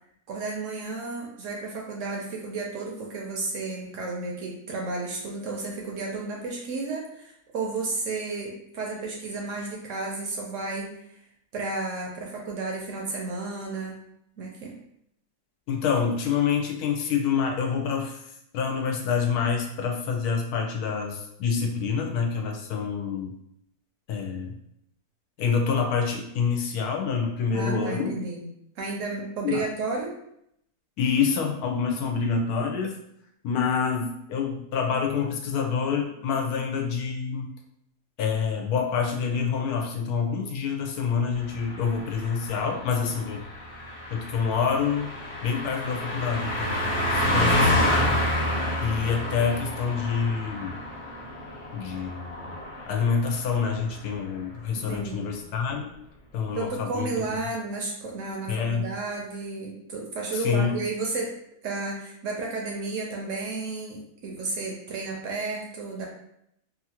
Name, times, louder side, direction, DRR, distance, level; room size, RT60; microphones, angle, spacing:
voice 1, 0.3-10.9 11.5-14.0 14.4-14.8 27.5-28.4 28.8-30.1 54.9-55.3 56.5-61.3 61.6-66.1, right 3 dB, 65° right, -1 dB, 0.8 m, -32 dB
voice 2, 15.7-23.3 24.1-24.6 25.4-28.2 29.4-29.6 31.0-33.0 33.4-37.5 38.2-43.4 44.1-45.1 45.4-48.2 48.8-50.8 51.7-52.5 52.9-55.9 56.3-57.2 58.5-58.9 60.3-60.8, left 6 dB, 85° left, 1 dB, 1.1 m, -27 dB
Car passing by, 41.4-53.4 53.7-53.9, left 1 dB, 40° left, 0.5 m, -28 dB
2.9 x 2.4 x 2.8 m, 0.76 s
omnidirectional pair, 1.6 m